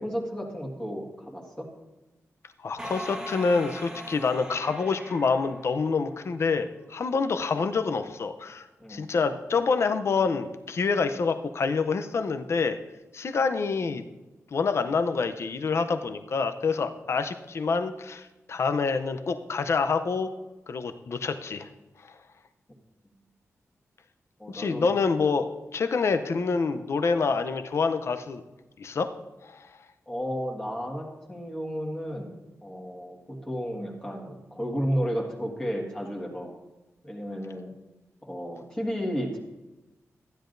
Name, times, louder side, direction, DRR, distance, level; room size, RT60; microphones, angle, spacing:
voice 1, 0.0-1.7 8.8-9.1 24.4-24.9 30.1-36.5 37.0-37.7 38.2-39.4, equal, 10° left, -2 dB, 1.6 m, -33 dB
voice 2, 2.6-12.8 13.1-14.0 14.5-20.3 20.7-21.7 24.5-25.5 25.7-28.4 28.8-29.1 29.4-29.7, left 4 dB, 55° left, 8 dB, 0.6 m, -27 dB
sound 1, 2.8-6.5, equal, 10° right, 1.2 m, -41 dB
14.5 x 10.0 x 2.6 m, 1.1 s
wide cardioid pair, 135°, 5 cm